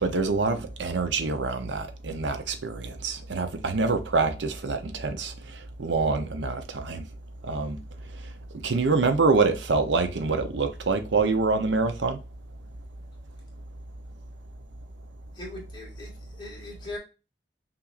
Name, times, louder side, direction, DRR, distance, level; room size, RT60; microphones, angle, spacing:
voice 1, 0.0-5.3 5.8-7.0 7.5-7.8 8.6-12.2, right 4 dB, 85° right, 0.7 m, -25 dB
voice 2, 15.3-17.0, left 2 dB, 25° left, 1.9 m, -40 dB
5.7 x 2.6 x 2.4 m
head